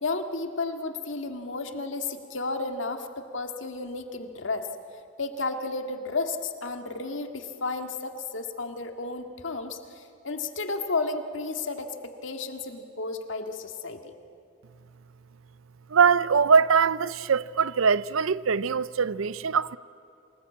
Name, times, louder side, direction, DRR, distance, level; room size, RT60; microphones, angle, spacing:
voice 1, 0.0-4.7 5.2-14.1, left 3 dB, 70° left, 1.9 m, -32 dB
voice 2, 15.9-19.8, right 6 dB, 85° right, 0.6 m, -22 dB
27.5 x 19.5 x 8.5 m
head